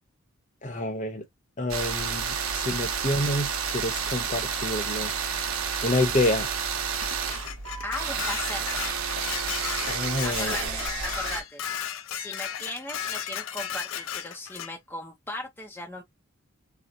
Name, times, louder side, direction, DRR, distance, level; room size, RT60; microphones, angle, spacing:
voice 1, 0.6-1.2 1.6-5.1 5.8-6.5 9.9-10.6, left 1 dB, 35° left, 0.8 m, -28 dB
sound 1, 1.7-11.4, right 6 dB, 90° right, 1.0 m, -30 dB
Dishes pots and pans, 7.0-14.7, left 9 dB, 70° left, 0.4 m, -35 dB
voice 2, 7.8-8.8 10.2-11.6 12.1-16.0, left 1 dB, 10° left, 0.5 m, -37 dB
4.3 x 2.0 x 2.5 m
head